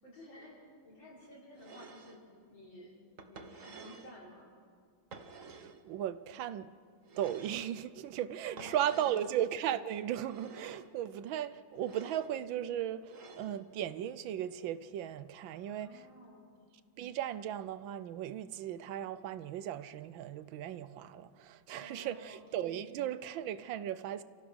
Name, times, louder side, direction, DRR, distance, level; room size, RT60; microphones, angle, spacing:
voice 1, 0.0-3.0 3.2-4.5 8.5-9.2 15.7-16.5 21.7-22.5, left 1 dB, 70° left, 6.3 m, -53 dB
sound 1, 1.6-2.2 3.2-4.2 5.1-5.8 7.1-7.7 8.6-9.3 10.2-10.9 11.8-12.3 13.1-13.6, right 4 dB, 45° right, 1.4 m, -51 dB
voice 2, 5.5-6.8 7.2-16.1 17.0-24.2, right 11 dB, 80° right, 1.4 m, -36 dB
30.0 x 15.0 x 6.3 m
omnidirectional pair, 2.1 m